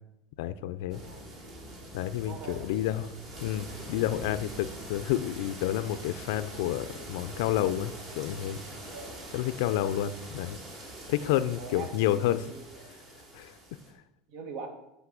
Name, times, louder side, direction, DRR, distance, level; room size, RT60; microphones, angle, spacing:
voice 1, 0.4-1.0 1.9-3.1 3.4-8.6 9.3-10.6 11.1-12.5 13.3-13.5, left 12 dB, 75° left, 12 dB, 0.4 m, -30 dB
sound 1, 0.9-13.9, right 1 dB, 45° right, 3.1 m, -44 dB
voice 2, 0.9-1.3 2.2-2.7 8.8-9.2 11.6-12.9 14.3-14.7, right 5 dB, 60° right, 5 dB, 1.6 m, -43 dB
8.3 x 5.3 x 6.5 m, 0.87 s
supercardioid pair, 125°, 0 cm